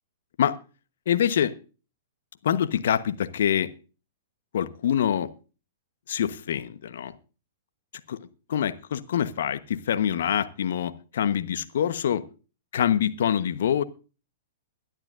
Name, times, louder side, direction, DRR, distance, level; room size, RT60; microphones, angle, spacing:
voice 1, 1.1-1.5 2.4-3.7 4.5-5.3 6.1-7.1 8.1-8.2 8.5-12.2 12.7-13.8, left 9 dB, 65° left, 11 dB, 1.1 m, -25 dB
22.0 x 10.5 x 2.6 m, 0.35 s
figure-of-eight pair, 110°, 0 cm